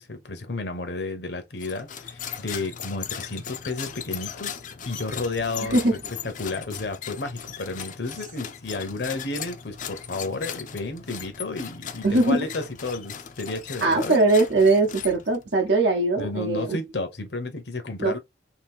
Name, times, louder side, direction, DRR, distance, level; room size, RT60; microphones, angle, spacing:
voice 1, 0.0-5.8 6.2-14.2 16.2-18.2, left 3 dB, 65° left, 0.8 m, -32 dB
sound 1, 1.6-15.5, left 8 dB, 45° left, 0.4 m, -38 dB
voice 2, 5.6-5.9 12.0-12.5 13.8-16.8 18.0-18.1, right 2 dB, 75° right, 0.7 m, -21 dB
2.8 x 2.6 x 3.5 m
head